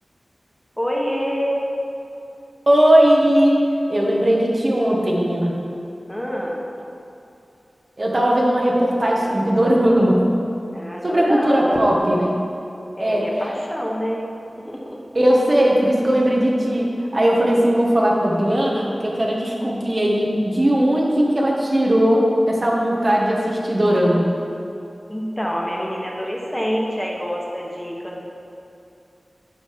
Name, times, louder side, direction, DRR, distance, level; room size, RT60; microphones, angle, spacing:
voice 1, 0.8-1.6 6.1-6.6 10.7-11.8 13.0-14.2 14.6-15.0 25.1-28.2, equal, 10° left, -2 dB, 1.5 m, -26 dB
voice 2, 2.7-3.6 3.9-5.5 8.0-10.2 11.0-12.4 13.0-13.5 15.1-24.3, equal, 45° right, -2 dB, 1.4 m, -18 dB
9.8 x 5.4 x 4.8 m, 2.7 s
cardioid pair, 45°, 0 cm